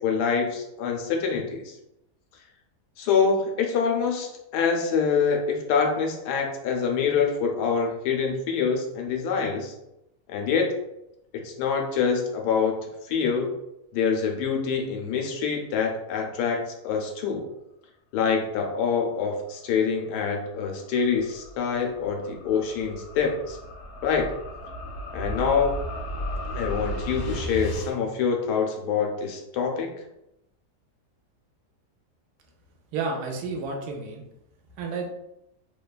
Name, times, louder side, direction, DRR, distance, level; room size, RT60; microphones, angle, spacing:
voice 1, 0.0-1.7 3.0-9.7 10.3-10.7 11.3-12.8 13.1-13.5 13.9-17.4 18.1-23.6 24.0-24.3 25.1-25.7 26.5-29.9, left 6 dB, 90° left, 1 dB, 1.2 m, -25 dB
sound 1, 20.1-27.9, equal, 70° left, 0.9 m, -35 dB
voice 2, 32.9-34.2 34.8-35.1, right 4 dB, 80° right, 2 dB, 1.1 m, -31 dB
2.9 x 2.2 x 2.3 m, 0.86 s
omnidirectional pair, 1.7 m